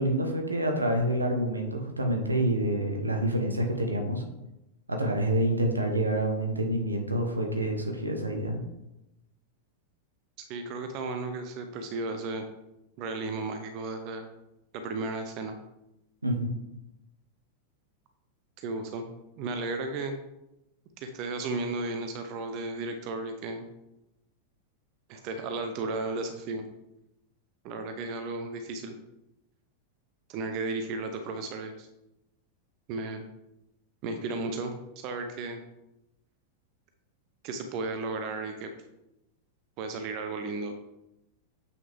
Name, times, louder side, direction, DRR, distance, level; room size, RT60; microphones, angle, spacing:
voice 1, 0.0-4.2 4.9-8.6 16.2-16.5, right 1 dB, 80° right, 3 dB, 1.2 m, -27 dB
voice 2, 10.5-12.5 13.0-14.3 14.7-15.6 18.6-19.1 19.4-20.1 21.0-23.6 25.1-26.6 27.6-29.0 30.3-31.9 32.9-33.2 34.0-35.6 37.4-38.7 39.8-40.7, right 3 dB, 40° right, 7 dB, 0.8 m, -34 dB
8.1 x 6.1 x 3.6 m, 0.91 s
figure-of-eight pair, 90°, 0 cm